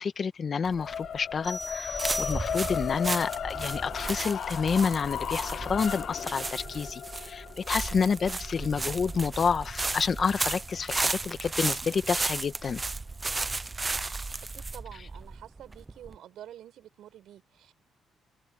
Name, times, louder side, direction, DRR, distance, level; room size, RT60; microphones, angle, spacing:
voice 1, 0.0-12.8, left 6 dB, 45° left, 1.8 m, -29 dB
sound 1, 0.7-16.2, right 3 dB, 25° right, 0.9 m, -34 dB
sound 2, 0.8-10.9, left 9 dB, 60° left, 0.9 m, -37 dB
sound 3, 1.4-3.0, equal, 5° left, 2.9 m, -38 dB
voice 2, 14.4-17.7, right 11 dB, 75° right, 7.4 m, -48 dB
cardioid pair, 90°, 0 cm